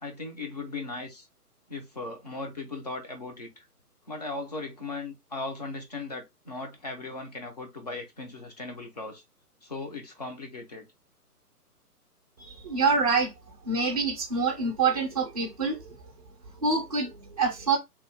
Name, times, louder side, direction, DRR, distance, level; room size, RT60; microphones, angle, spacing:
voice 1, 0.0-1.3 1.7-3.7 4.1-9.2 9.6-10.8 14.9-15.0 17.5-17.6, left 3 dB, 25° left, 0.6 m, -38 dB
voice 2, 12.4-13.3 13.6-16.0 16.6-17.8, right 4 dB, 25° right, 0.5 m, -26 dB
3.0 x 2.5 x 3.2 m
figure-of-eight pair, 135°, 47 cm